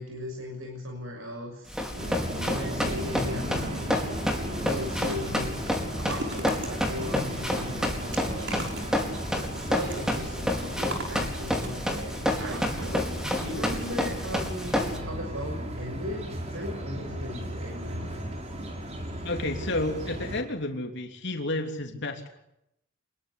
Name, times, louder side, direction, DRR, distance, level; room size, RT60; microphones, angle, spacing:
voice 1, 0.0-1.8 2.4-3.9 4.6-5.6 6.0-9.0 9.4-18.3, equal, 80° right, 2 dB, 6.5 m, -38 dB
Run, 1.7-15.0, left 1 dB, 5° right, 4.6 m, -30 dB
sound 1, 2.0-20.4, equal, 30° right, 4.7 m, -36 dB
sound 2, 4.4-12.9 13.6-14.4 14.7-14.9 15.1-15.2, right 1 dB, 60° right, 6.5 m, -41 dB
voice 2, 19.2-22.4, left 2 dB, 60° left, 3 dB, 3.3 m, -31 dB
27.5 x 21.5 x 8.4 m, 0.82 s
head